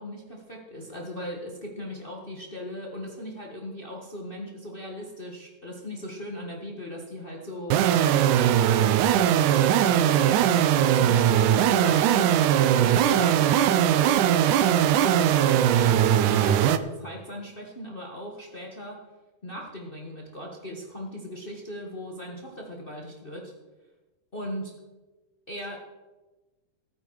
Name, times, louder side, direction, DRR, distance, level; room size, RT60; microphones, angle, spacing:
voice 1, 0.0-19.0 19.4-23.5 24.3-24.7 25.5-25.8, left 1 dB, 65° left, 0 dB, 0.5 m, -38 dB
sound 1, 7.7-16.8, right 10 dB, 75° right, 2.0 m, -20 dB
17.0 x 9.2 x 4.7 m, 1.1 s
omnidirectional pair, 3.8 m